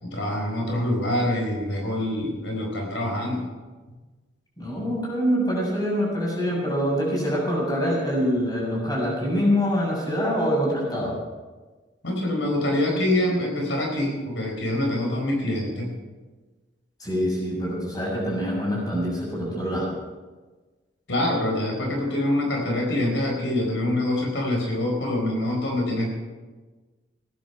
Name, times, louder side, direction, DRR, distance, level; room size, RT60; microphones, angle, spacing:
voice 1, 0.0-3.4 12.0-15.9 21.1-26.1, left 1 dB, 80° left, 0 dB, 4.4 m, -25 dB
voice 2, 4.6-11.1 17.0-19.9, equal, 20° left, -4 dB, 6.7 m, -25 dB
18.5 x 10.5 x 5.9 m, 1.3 s
head